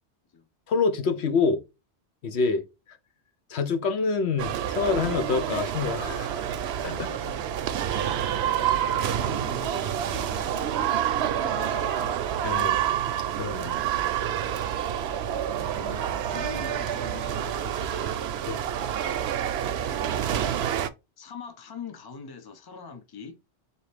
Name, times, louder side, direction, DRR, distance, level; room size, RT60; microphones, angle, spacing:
voice 1, 0.7-1.6 2.2-3.0 3.5-6.4 6.8-7.1 12.4-12.8 13.3-13.8 18.5-18.6, left 4 dB, 70° left, 1.0 m, -27 dB
sound 1, 4.4-20.9, right 10 dB, 70° right, 0.8 m, -28 dB
voice 2, 6.9-7.5 8.0-12.0 12.6-12.7 14.4-14.6 15.8-18.2 19.9-20.3 21.2-23.4, left 5 dB, 25° left, 0.6 m, -43 dB
4.2 x 2.9 x 3.2 m
omnidirectional pair, 1.2 m